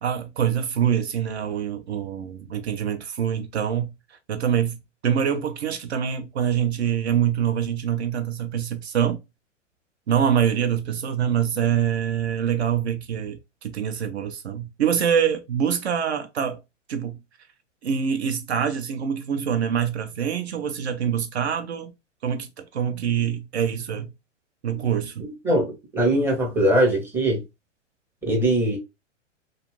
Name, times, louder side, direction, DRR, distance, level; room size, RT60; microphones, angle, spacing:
voice 1, 0.0-9.2 10.1-16.6 16.9-17.2 17.8-21.9 22.2-24.1 24.6-25.3, right 8 dB, 60° right, 0.6 m, -25 dB
voice 2, 25.4-27.4 28.2-28.8, right 1 dB, 5° right, 0.6 m, -21 dB
2.6 x 2.4 x 3.0 m
figure-of-eight pair, 110°, 38 cm